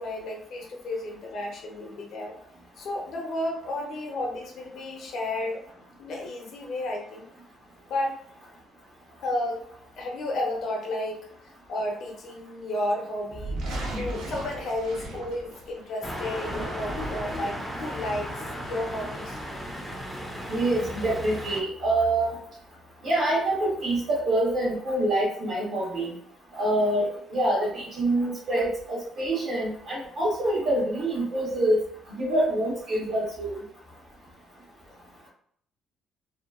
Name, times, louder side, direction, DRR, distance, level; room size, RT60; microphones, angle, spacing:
voice 1, 0.0-2.4 2.8-5.6 6.0-7.3 7.9-8.1 9.2-9.7 10.0-13.6 14.0-19.4, left 1 dB, 65° left, 1 dB, 0.7 m, -32 dB
sound 1, 13.3-15.8 16.3-17.5, right 1 dB, 85° right, 0.7 m, -36 dB
sound 2, 16.0-21.6, equal, 5° right, 0.5 m, -35 dB
voice 2, 20.5-22.4 23.0-26.1 26.5-31.8 32.1-33.6, right 1 dB, 55° right, -7 dB, 0.9 m, -26 dB
2.7 x 2.3 x 2.3 m, 0.63 s
cardioid pair, 120°, 0 cm